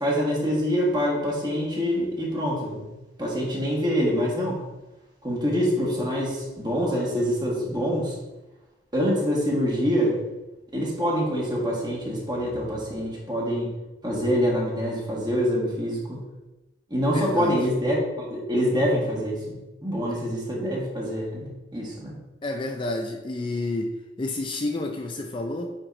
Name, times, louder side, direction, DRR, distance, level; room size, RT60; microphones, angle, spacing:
voice 1, 0.0-2.8 3.2-4.6 5.2-8.1 8.9-10.2 10.7-13.7 14.0-16.2 16.9-22.1, equal, 25° right, -4 dB, 1.6 m, -25 dB
voice 2, 17.1-17.7 20.1-20.2 22.4-25.7, left 2 dB, 30° left, 3 dB, 0.4 m, -30 dB
8.8 x 4.4 x 2.6 m, 1.0 s
head